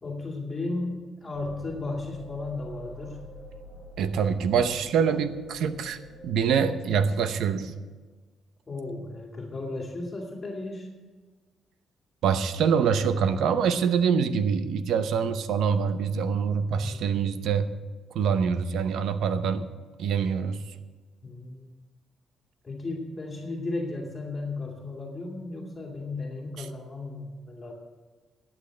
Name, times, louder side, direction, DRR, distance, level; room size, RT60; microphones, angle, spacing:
voice 1, 0.0-3.2 8.7-10.9 16.7-17.0 21.2-21.7 22.6-27.7, left 2 dB, 25° left, -1 dB, 2.2 m, -35 dB
sound 1, 1.3-6.4, equal, 40° right, 4.3 m, -46 dB
voice 2, 4.0-6.0 6.2-7.7 12.2-17.7 18.1-19.7 20.0-20.6 26.6-26.7, right 6 dB, 80° right, 11 dB, 0.8 m, -25 dB
12.0 x 8.3 x 7.6 m, 1.4 s
cardioid pair, 135°, 0 cm